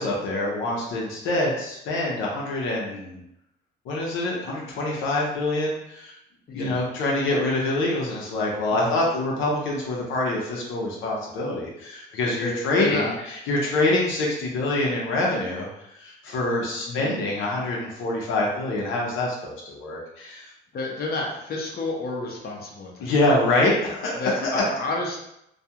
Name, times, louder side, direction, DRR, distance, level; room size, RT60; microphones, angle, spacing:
voice 1, 0.0-3.2 3.9-6.1 6.5-15.7 16.0-20.5 23.0-24.6, left 2 dB, 85° left, -3 dB, 0.7 m, -25 dB
voice 2, 6.5-6.8 8.7-9.0 12.4-13.2 16.9-17.2 20.7-23.1 24.2-25.2, left 2 dB, 50° left, -2 dB, 0.7 m, -30 dB
2.3 x 2.3 x 2.8 m, 0.80 s
cardioid pair, 90°, 20 cm